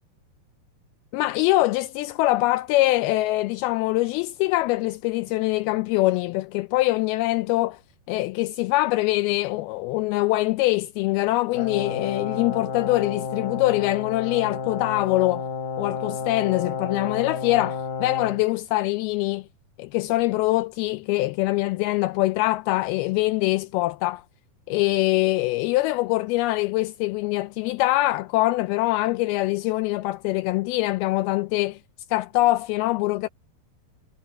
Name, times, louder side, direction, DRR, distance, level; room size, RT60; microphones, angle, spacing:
voice 1, 1.1-7.8 8.1-15.5 15.8-19.5 19.8-24.2 24.7-31.8 32.1-33.3, left 19 dB, 85° left, 2.4 m, -23 dB
Brass instrument, 11.5-18.4, left 5 dB, 55° left, 5.3 m, -31 dB
omnidirectional pair, 4.6 m